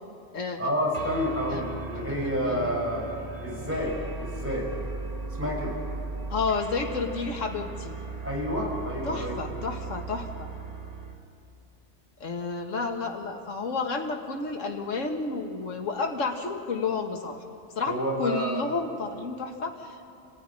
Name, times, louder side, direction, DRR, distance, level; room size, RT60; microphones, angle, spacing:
voice 1, 0.6-3.1 3.4-4.7 5.4-5.8 8.2-9.3 17.9-18.5, equal, 10° right, -2 dB, 5.6 m, -29 dB
sound 1, 0.9-11.3, right 3 dB, 30° right, 1.6 m, -37 dB
voice 2, 2.2-2.7 6.3-8.0 9.1-10.5 12.2-17.4 17.8-20.1, left 4 dB, 80° left, 3 dB, 2.0 m, -31 dB
27.5 x 15.5 x 9.9 m, 2.7 s
omnidirectional pair, 1.3 m